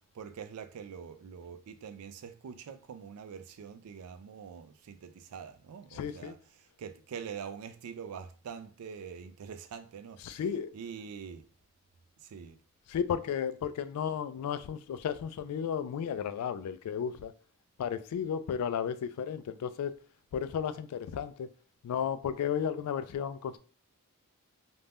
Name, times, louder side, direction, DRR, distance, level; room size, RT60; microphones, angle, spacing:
voice 1, 0.1-10.4 10.7-11.5 12.2-12.6, right 7 dB, 80° right, 0.4 m, -44 dB
voice 2, 5.9-6.4 10.2-10.7 12.9-17.3 17.8-20.0 20.3-21.5 21.8-23.6, left 8 dB, 90° left, 0.3 m, -33 dB
2.5 x 2.1 x 3.3 m
head